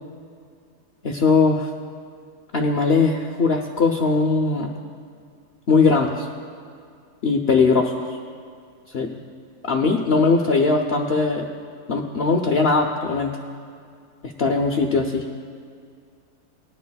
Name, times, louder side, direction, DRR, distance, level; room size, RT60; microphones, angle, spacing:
voice 1, 1.0-1.7 2.5-4.7 5.7-6.3 7.2-8.2 8.9-9.2 9.6-11.5 11.9-13.3 14.4-15.2, left 4 dB, 70° left, 3 dB, 0.5 m, -20 dB
19.0 x 10.5 x 2.3 m, 2.2 s
omnidirectional pair, 1.8 m